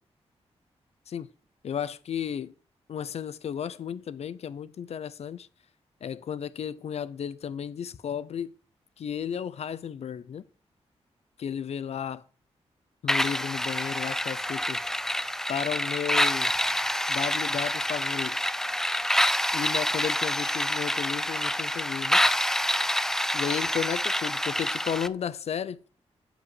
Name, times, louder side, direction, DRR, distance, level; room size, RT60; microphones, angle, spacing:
voice 1, 1.6-2.5 2.9-5.5 6.0-8.5 9.0-10.4 11.4-12.2 13.0-14.8 15.5-16.5 17.1-18.5 19.5-22.2 23.3-25.8, left 8 dB, 70° left, 0.7 m, -33 dB
sound 1, 13.1-25.1, left 1 dB, 5° left, 0.5 m, -27 dB
11.0 x 5.2 x 7.8 m
wide cardioid pair, 115°, 11 cm